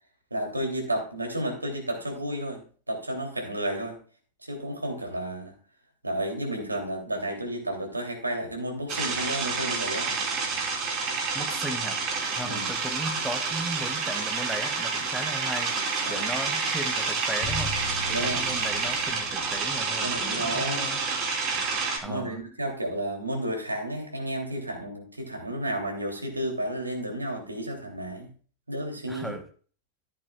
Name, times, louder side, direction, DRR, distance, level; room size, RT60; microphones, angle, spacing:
voice 1, 0.3-2.6 2.9-4.0 4.5-5.6 6.0-10.1 12.4-12.7 16.0-16.3 18.1-18.6 20.0-20.9 22.0-28.3 28.7-29.4, right 1 dB, 80° right, 1 dB, 3.0 m, -32 dB
sound 1, 8.9-22.0, right 4 dB, 35° right, 3.5 m, -29 dB
voice 2, 11.3-12.0 12.3-15.7 16.1-17.7 18.1-21.0 22.0-22.4 29.1-29.5, right 1 dB, 5° right, 7 dB, 1.1 m, -36 dB
sound 2, 17.4-21.5, left 2 dB, 55° left, 2.6 m, -39 dB
14.5 x 8.4 x 2.4 m, 0.42 s
figure-of-eight pair, 90°, 0 cm